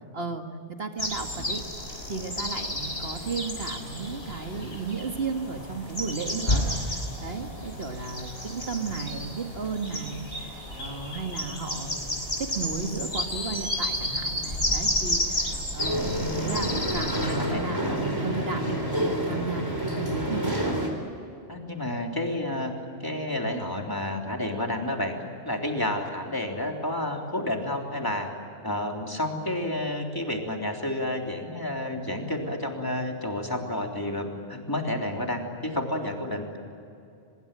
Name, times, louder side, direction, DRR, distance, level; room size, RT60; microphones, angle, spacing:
voice 1, 0.1-0.4 0.7-1.6 2.1-20.6, right 4 dB, 60° right, 5 dB, 2.2 m, -34 dB
sound 1, 1.0-17.3, left 1 dB, 60° left, 5.9 m, -32 dB
sound 2, 15.8-20.9, equal, 20° right, 4.3 m, -28 dB
voice 2, 17.3-17.6 21.5-22.7 23.0-25.1 25.4-28.3 28.6-36.5, left 1 dB, 20° left, 1 dB, 3.3 m, -30 dB
24.5 x 22.5 x 9.0 m, 2.6 s
omnidirectional pair, 1.2 m